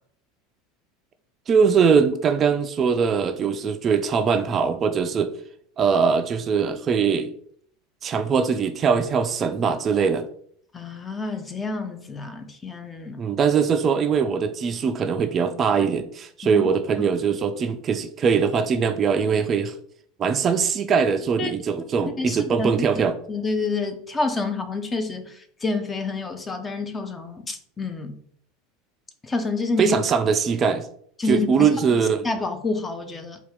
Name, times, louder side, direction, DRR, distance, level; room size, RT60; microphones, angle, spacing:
voice 1, 1.5-5.3 5.8-7.3 8.0-10.2 13.2-19.7 20.2-23.1 29.8-30.9 31.3-32.3, right 6 dB, 35° right, 0.3 m, -21 dB
voice 2, 10.7-13.2 16.4-16.7 21.4-21.5 22.0-22.7 23.3-25.3 25.6-28.2 29.2-30.0 31.2-31.7 32.2-33.4, left 3 dB, 20° left, 0.6 m, -28 dB
4.1 x 2.4 x 3.6 m
figure-of-eight pair, 75°, 0 cm